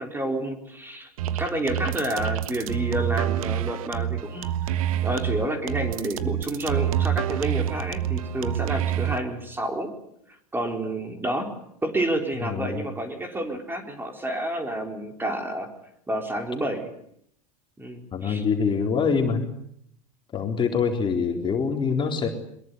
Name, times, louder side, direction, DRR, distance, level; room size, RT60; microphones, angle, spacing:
voice 1, 0.0-4.5 5.0-9.9 10.5-11.5 11.8-15.7 16.1-16.9 17.8-18.4, right 1 dB, 10° right, 5 dB, 4.3 m, -29 dB
sound 1, 1.2-9.2, right 11 dB, 65° right, 1.4 m, -27 dB
voice 2, 12.4-12.8 18.1-19.5 20.3-22.3, left 5 dB, 25° left, 3 dB, 3.9 m, -24 dB
23.0 x 21.5 x 9.5 m, 0.72 s
hypercardioid pair, 90°, 19 cm